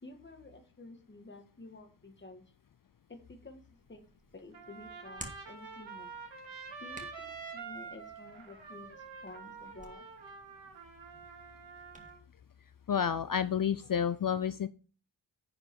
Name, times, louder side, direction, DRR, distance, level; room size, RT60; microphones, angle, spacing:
voice 1, 0.0-2.4 3.1-3.6 3.9-4.0 4.3-6.2 6.8-10.0, left 2 dB, 25° left, 5 dB, 1.7 m, -51 dB
Hands, 3.7-12.1, right 1 dB, 15° right, 2.0 m, -55 dB
Trumpet, 4.5-12.2, right 5 dB, 75° right, 2.8 m, -47 dB
voice 2, 12.9-14.7, left 8 dB, 45° left, 14 dB, 0.5 m, -30 dB
10.5 x 5.1 x 4.6 m, 0.37 s
wide cardioid pair, 115°, 46 cm